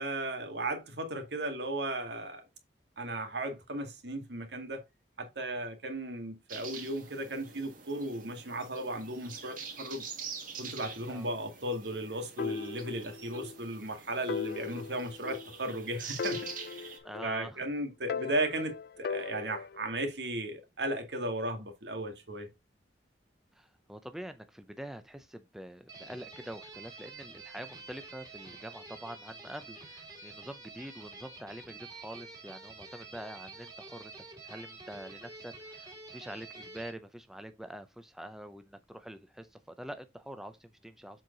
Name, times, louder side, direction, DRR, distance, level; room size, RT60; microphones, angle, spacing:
voice 1, 0.0-2.4 3.0-4.8 5.2-10.1 10.6-16.9 17.2-22.5, right 1 dB, 70° right, 2.0 m, -36 dB
sound 1, 6.5-17.0, right 6 dB, 50° right, 1.9 m, -46 dB
sound 2, 12.4-13.6 13.8-13.9 14.3-15.8 16.2-17.6 18.1-19.9, left 5 dB, 60° left, 0.4 m, -38 dB
voice 2, 17.0-17.6 23.6-34.1 34.4-41.2, right 1 dB, ahead, 0.6 m, -45 dB
sound 3, 25.9-36.9, right 3 dB, 20° right, 2.6 m, -48 dB
7.5 x 4.6 x 3.9 m
head